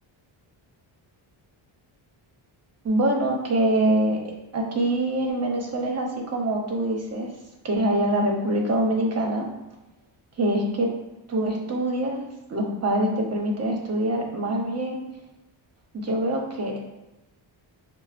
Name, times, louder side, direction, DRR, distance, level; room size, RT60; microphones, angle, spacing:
voice 1, 2.8-4.2 4.5-7.3 7.6-9.4 10.4-10.9 11.3-12.2 12.5-15.0 15.9-16.8, right 1 dB, 30° right, 0 dB, 0.8 m, -24 dB
5.4 x 2.0 x 2.4 m, 0.96 s
cardioid pair, 125°, 49 cm